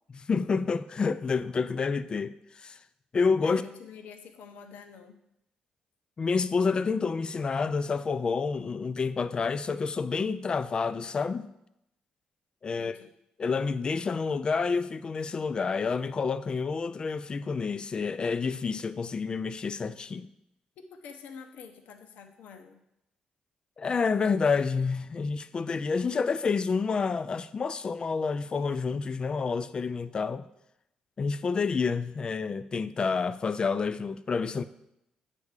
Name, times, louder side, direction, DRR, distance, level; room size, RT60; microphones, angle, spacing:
voice 1, 0.1-2.8 3.1-3.6 6.2-11.5 12.6-13.0 13.4-20.3 23.8-30.5 31.2-34.6, left 5 dB, 35° left, 0.4 m, -29 dB
voice 2, 3.4-5.1 12.7-13.1 20.8-22.8, left 6 dB, 80° left, 0.8 m, -47 dB
8.3 x 3.6 x 6.6 m
cardioid pair, 105°, 3 cm